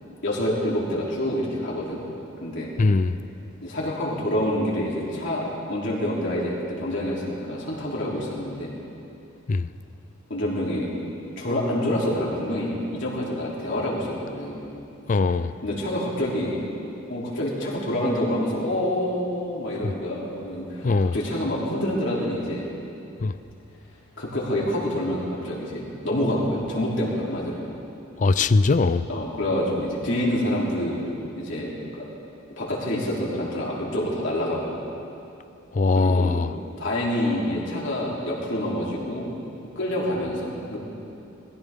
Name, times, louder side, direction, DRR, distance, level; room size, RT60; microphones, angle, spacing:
voice 1, 0.2-2.0 2.4-2.7 3.6-8.7 10.3-10.9 11.4-14.7 15.6-16.6 17.1-22.7 24.2-27.6 29.1-31.1 31.4-32.0 32.6-34.8 35.9-36.4 36.8-39.3 39.7-40.8, left 1 dB, 60° left, -5 dB, 3.3 m, -27 dB
voice 2, 2.8-3.2 9.5-9.7 15.1-15.5 19.8-19.9 20.8-21.2 23.2-23.3 28.2-29.0 35.7-36.5, left 3 dB, 40° left, 14 dB, 0.4 m, -21 dB
21.0 x 15.5 x 3.7 m, 2.7 s
head